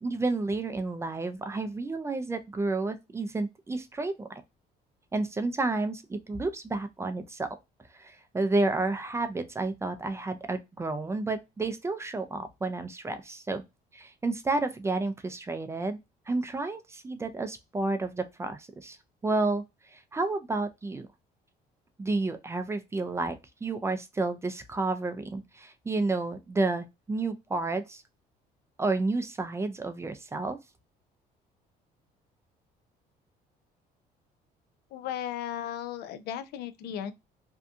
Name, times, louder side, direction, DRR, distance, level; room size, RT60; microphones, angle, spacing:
voice 1, 0.0-4.3 5.1-7.5 8.0-13.6 13.9-16.0 16.3-19.0 19.2-19.6 19.9-21.1 22.0-28.0 28.8-30.6, right 3 dB, 15° right, 0.4 m, -31 dB
voice 2, 34.9-37.1, left 10 dB, 75° left, 0.4 m, -35 dB
2.7 x 2.2 x 2.4 m
cardioid pair, 110°, 17 cm